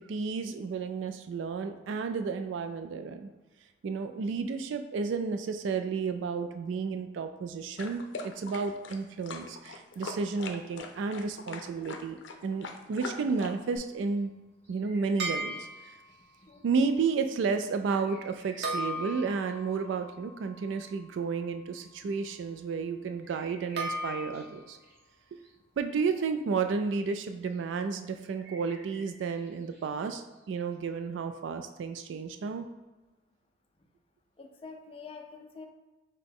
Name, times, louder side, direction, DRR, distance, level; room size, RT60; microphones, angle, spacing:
voice 1, 0.0-3.3 3.8-14.3 14.7-16.0 16.6-24.8 25.3-25.4 25.8-32.7, right 5 dB, 90° right, 8 dB, 0.3 m, -32 dB
sound 1, 7.8-13.8, left 3 dB, 85° left, 0.5 m, -42 dB
sound 2, 12.6-12.8 13.3-13.5 14.1-14.2 14.6-16.6 16.9-20.0 22.1-22.3 23.2-25.0 25.3-25.5 26.3-26.4 26.6-27.0 27.4-27.6 28.1-29.9 30.3-30.5 30.7-30.9, right 1 dB, 10° right, 0.8 m, -55 dB
sound 3, 15.2-16.2 18.6-21.7 23.8-24.7, right 1 dB, 60° right, 0.7 m, -37 dB
voice 2, 34.4-35.7, left 4 dB, 30° left, 3 dB, 0.4 m, -46 dB
6.0 x 2.2 x 3.5 m, 1.2 s
head